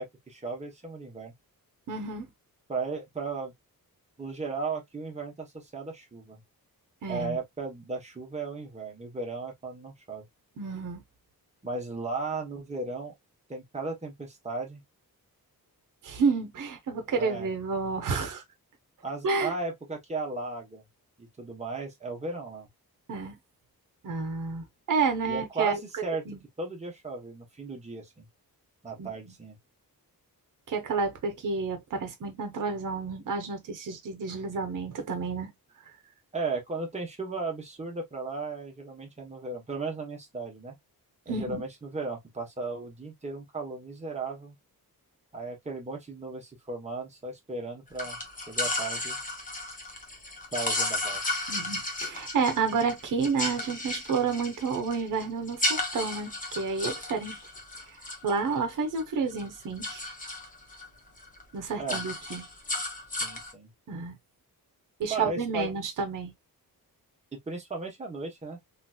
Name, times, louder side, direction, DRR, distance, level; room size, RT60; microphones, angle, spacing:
voice 1, 0.0-1.3 2.7-3.5 4.2-6.4 7.1-10.3 11.6-13.1 13.5-14.8 17.1-17.5 19.0-20.8 21.2-22.7 25.3-26.2 26.6-28.3 28.8-29.6 36.3-40.7 41.3-44.5 45.3-48.2 48.5-49.2 50.5-51.2 61.8-62.0 63.1-63.7 65.1-65.7 67.5-68.6, right 3 dB, 20° right, 1.0 m, -35 dB
voice 2, 1.9-2.3 7.0-7.4 10.6-11.0 16.0-18.4 19.2-19.5 23.1-23.4 24.0-25.8 26.3-26.4 29.0-29.1 30.7-35.5 41.3-41.6 51.5-57.4 58.2-60.1 61.5-62.4 63.9-64.1 65.0-66.3, right 4 dB, 55° right, 0.9 m, -30 dB
sound 1, 48.0-59.0 59.3-60.9 61.2-61.4 61.7-63.5, left 2 dB, 20° left, 0.9 m, -34 dB
3.3 x 2.9 x 2.3 m
wide cardioid pair, 180°, 36 cm